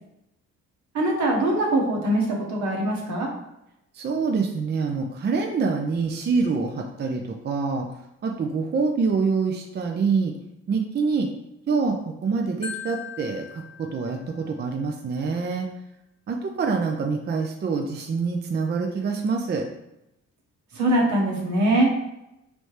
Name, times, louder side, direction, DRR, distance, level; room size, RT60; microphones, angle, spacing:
voice 1, 0.9-3.3 20.7-21.9, right 1 dB, 70° right, -1 dB, 1.2 m, -22 dB
voice 2, 3.9-7.9 8.2-10.3 10.7-11.3 11.7-12.0 12.2-15.7 16.3-19.7, right 4 dB, 35° right, 2 dB, 0.5 m, -25 dB
Marimba xylophone, 12.6-14.7, left 7 dB, 20° left, 0.7 m, -39 dB
4.0 x 3.2 x 3.2 m, 0.87 s
cardioid pair, 90°, 30 cm